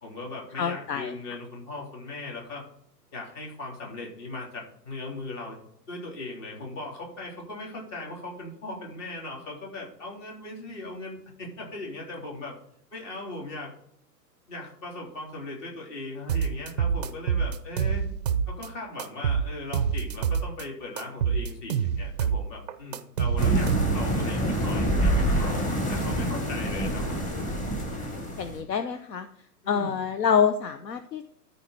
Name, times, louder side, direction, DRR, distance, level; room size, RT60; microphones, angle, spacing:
voice 1, 0.0-2.6 3.1-5.6 5.9-12.5 12.9-13.7 14.5-18.0 18.5-27.2 29.6-30.0, left 2 dB, 45° left, -2 dB, 3.7 m, -38 dB
voice 2, 0.6-1.1 28.4-29.3 29.7-31.2, left 7 dB, 75° left, 10 dB, 0.8 m, -26 dB
sound 1, 16.3-18.7 19.0-20.6 21.0-24.2, right 7 dB, 30° right, 0.4 m, -26 dB
sound 2, 23.4-28.6, equal, 15° left, 1.5 m, -26 dB
13.0 x 4.4 x 4.2 m, 0.68 s
figure-of-eight pair, 110°, 50 cm